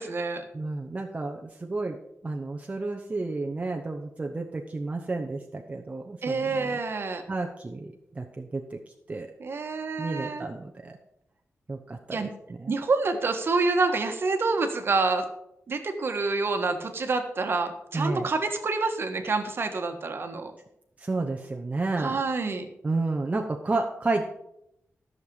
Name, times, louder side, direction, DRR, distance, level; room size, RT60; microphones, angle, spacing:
voice 1, 0.0-0.4 6.2-7.2 9.4-10.4 12.1-12.3 12.7-15.3 15.7-20.5 22.0-22.7, right 3 dB, 50° right, 5 dB, 1.4 m, -27 dB
voice 2, 0.5-2.0 2.2-6.8 7.3-8.8 9.1-9.3 10.0-11.0 11.7-12.7 17.9-18.3 21.0-22.2 22.8-24.3, right 3 dB, 25° right, 2 dB, 0.9 m, -31 dB
14.0 x 6.7 x 5.5 m, 0.79 s
wide cardioid pair, 135°, 5 cm